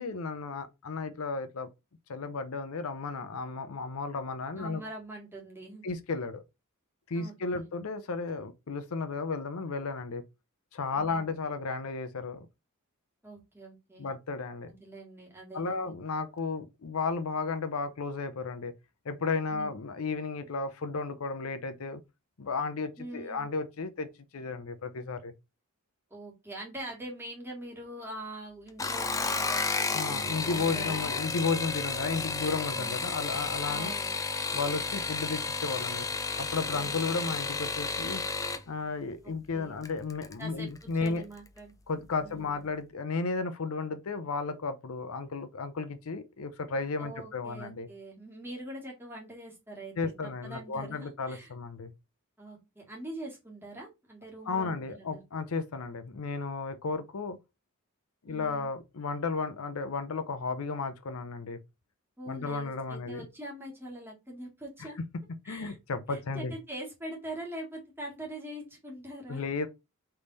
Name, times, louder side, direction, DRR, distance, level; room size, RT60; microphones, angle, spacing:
voice 1, 0.0-1.7 2.1-4.8 5.8-6.4 7.1-10.2 10.7-12.5 14.0-14.7 15.5-18.7 19.0-22.0 22.4-24.1 24.3-25.3 29.9-33.9 34.5-36.1 36.4-38.2 38.7-41.2 41.9-47.9 50.0-51.9 54.5-57.4 58.2-61.6 62.3-63.3 64.8-64.9 65.5-66.5 69.3-69.7, left 4 dB, 75° left, 0.6 m, -33 dB
voice 2, 4.6-5.8 7.1-7.6 10.9-11.3 13.2-14.1 14.7-15.9 19.5-19.7 23.0-23.5 26.1-31.1 32.7-33.0 33.6-34.2 39.2-39.8 40.4-40.7 41.0-41.7 42.2-42.6 47.0-51.5 52.4-55.2 58.2-58.7 62.2-65.0 65.4-65.8 66.1-69.4, right 1 dB, 10° right, 1.7 m, -44 dB
sound 1, 28.7-38.6 39.8-40.3 40.8-41.2 41.5-41.6, left 4 dB, 15° left, 0.4 m, -32 dB
3.5 x 3.3 x 4.0 m
head